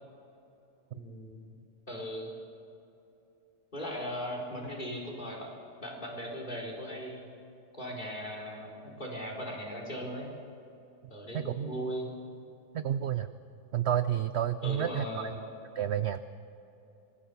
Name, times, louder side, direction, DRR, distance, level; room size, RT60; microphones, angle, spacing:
voice 1, 0.9-1.6 1.9-2.3 3.7-5.5 5.8-7.3 7.7-10.3 11.1-12.1 14.6-15.4, equal, 30° left, -1 dB, 4.2 m, -38 dB
voice 2, 11.3-11.7 12.7-13.3 13.7-15.3 15.8-16.2, right 10 dB, 65° right, 11 dB, 0.7 m, -30 dB
25.5 x 20.0 x 6.9 m, 2.9 s
omnidirectional pair, 1.8 m